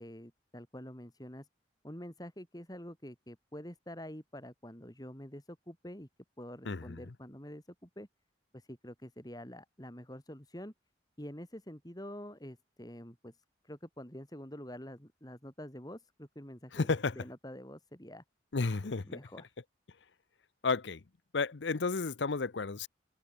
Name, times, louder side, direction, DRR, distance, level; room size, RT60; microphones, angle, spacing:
voice 1, 0.0-1.5 1.8-6.1 6.4-8.1 8.5-10.7 11.2-18.2 18.8-19.5, equal, 20° left, 5.3 m, -47 dB
voice 2, 6.7-7.0 16.7-17.1 18.5-19.1 20.6-21.0 21.3-22.9, left 4 dB, 75° left, 0.8 m, -32 dB
head